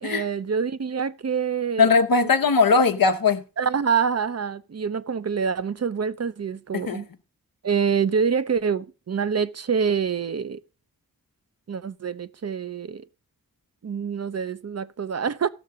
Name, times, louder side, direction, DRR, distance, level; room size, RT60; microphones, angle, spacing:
voice 1, 0.0-1.9 2.2-2.3 3.6-7.1 7.6-10.6 11.7-13.1 13.8-15.5, right 6 dB, 50° right, 0.6 m, -26 dB
voice 2, 1.8-3.4 6.7-7.0, left 4 dB, 80° left, 0.9 m, -19 dB
16.0 x 6.5 x 3.6 m
wide cardioid pair, 50°, 34 cm